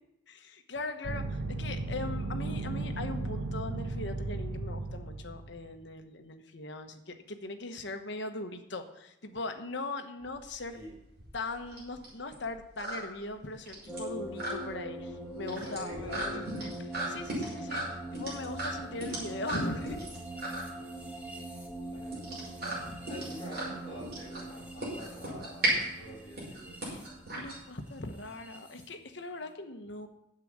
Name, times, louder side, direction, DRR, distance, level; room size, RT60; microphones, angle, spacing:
voice 1, 0.3-10.8 11.3-20.0 22.8-23.0 26.9-27.0 27.3-30.1, left 2 dB, 60° left, 6 dB, 1.2 m, -40 dB
sound 1, 1.0-5.6, right 2 dB, 65° right, 0.9 m, -35 dB
sound 2, 10.3-28.1, right 1 dB, 50° right, 5.6 m, -37 dB
sound 3, 13.9-28.9, right 1 dB, 10° right, 1.8 m, -43 dB
voice 2, 15.5-16.7 21.8-22.5 23.1-25.7 26.0-26.8, equal, 25° left, -5 dB, 6.0 m, -46 dB
9.8 x 7.7 x 8.7 m, 0.89 s
head